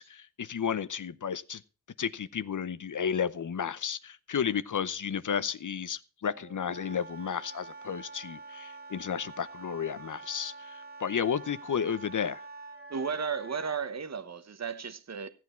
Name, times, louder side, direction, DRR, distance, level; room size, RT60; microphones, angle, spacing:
voice 1, 0.0-1.6 2.0-12.4, left 7 dB, 55° left, 0.7 m, -32 dB
Wind instrument woodwind instrument, 6.3-13.8, right 3 dB, 25° right, 2.1 m, -46 dB
voice 2, 12.9-15.3, right 6 dB, 45° right, 1.0 m, -34 dB
15.0 x 8.5 x 4.4 m
wide cardioid pair, 95°, 37 cm